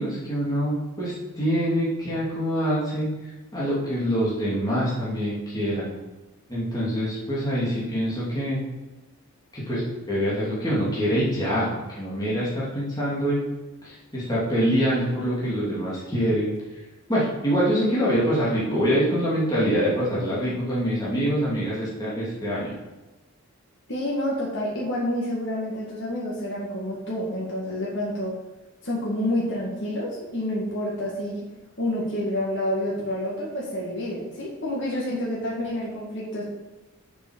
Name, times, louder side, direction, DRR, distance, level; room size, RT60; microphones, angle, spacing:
voice 1, 0.0-5.9 6.5-8.6 9.5-13.4 13.8-16.8 17.1-22.7, equal, 15° left, -8 dB, 2.7 m, -25 dB
voice 2, 23.9-28.3 28.8-31.4 31.8-36.4, left 1 dB, 55° left, -5 dB, 2.2 m, -28 dB
7.1 x 6.2 x 6.4 m, 1.1 s
head